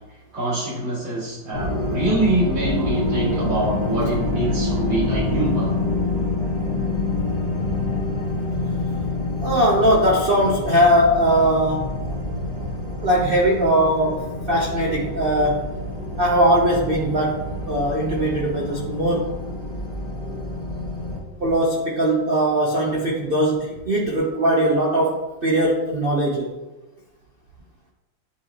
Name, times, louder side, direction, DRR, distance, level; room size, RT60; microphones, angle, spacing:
voice 1, 0.3-5.7 8.9-9.1 9.5-9.7, right 2 dB, 75° right, -8 dB, 3.1 m, -25 dB
sound 1, 1.5-21.2, left 2 dB, 20° left, 1.5 m, -27 dB
voice 2, 9.4-11.9 13.0-14.2 14.5-15.6 16.2-17.4 17.7-19.3 21.4-26.5, right 1 dB, 50° right, -3 dB, 0.6 m, -20 dB
10.0 x 3.8 x 2.9 m, 1.1 s
omnidirectional pair, 2.1 m